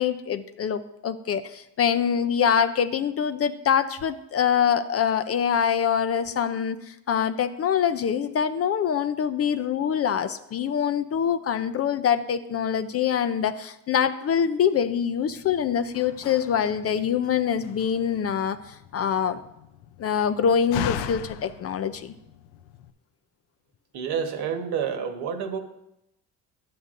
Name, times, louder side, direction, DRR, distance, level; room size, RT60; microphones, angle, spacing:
voice 1, 0.0-18.6 18.9-19.4 20.0-22.1, left 8 dB, 40° left, 11 dB, 0.4 m, -24 dB
Slam, 15.3-22.9, left 10 dB, 90° left, 0.5 m, -39 dB
voice 2, 23.9-25.6, right 7 dB, 70° right, 6 dB, 1.2 m, -29 dB
11.0 x 7.7 x 2.5 m, 0.85 s
cardioid pair, 95°, 41 cm